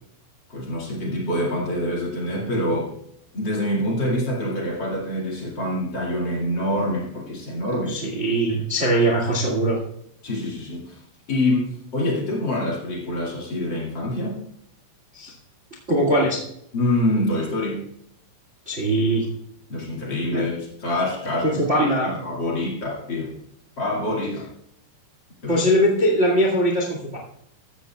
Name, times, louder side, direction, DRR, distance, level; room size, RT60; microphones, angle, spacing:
voice 1, 0.5-3.0 3.3-8.2 8.5-8.6 10.2-11.0 11.3-14.4 16.7-17.8 19.7-23.3 23.8-24.5 25.4-25.6, left 1 dB, 35° left, -3 dB, 1.9 m, -26 dB
voice 2, 7.9-9.8 15.1-15.3 15.9-16.4 18.6-19.3 20.3-20.4 21.4-22.2 25.5-27.2, right 1 dB, 70° right, 0 dB, 0.7 m, -21 dB
15.5 x 13.5 x 2.4 m, 0.72 s
omnidirectional pair, 5.4 m